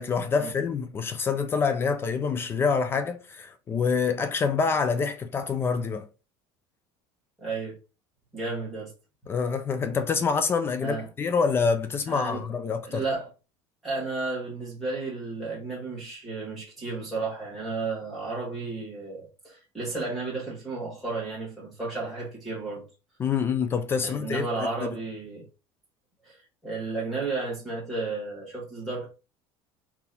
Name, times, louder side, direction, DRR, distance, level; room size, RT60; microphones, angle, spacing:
voice 1, 0.0-6.1 9.3-13.0 23.2-24.9, left 5 dB, 20° left, 0.3 m, -26 dB
voice 2, 7.4-7.8 8.3-8.9 10.8-11.1 12.1-12.5 12.8-13.3 13.8-22.8 24.0-25.5 26.2-29.1, right 3 dB, ahead, 1.7 m, -33 dB
4.0 x 2.7 x 4.1 m
cardioid pair, 170°, 11 cm